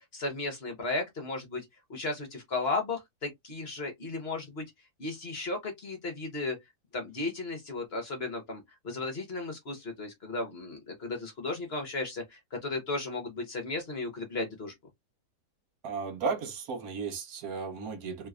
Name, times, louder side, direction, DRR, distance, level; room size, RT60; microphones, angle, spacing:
voice 1, 0.0-4.6 5.0-6.6 6.9-14.7, left 3 dB, 45° left, 1.1 m, -35 dB
voice 2, 15.8-18.3, right 5 dB, 70° right, 1.2 m, -34 dB
3.2 x 3.0 x 2.4 m
omnidirectional pair, 1.6 m